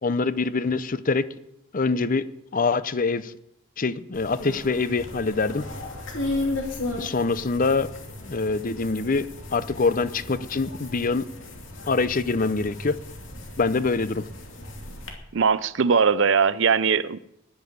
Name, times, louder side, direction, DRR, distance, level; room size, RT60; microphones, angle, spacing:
voice 1, 0.0-1.2 1.7-2.3 2.5-3.3 3.8-5.6 7.0-7.9 8.2-11.2 11.8-13.0 13.6-14.3, left 4 dB, 40° left, 0.6 m, -24 dB
sound 1, 4.1-15.1, left 2 dB, 65° left, 2.7 m, -35 dB
voice 2, 15.3-17.2, right 6 dB, 60° right, 0.6 m, -20 dB
10.5 x 10.5 x 9.5 m
head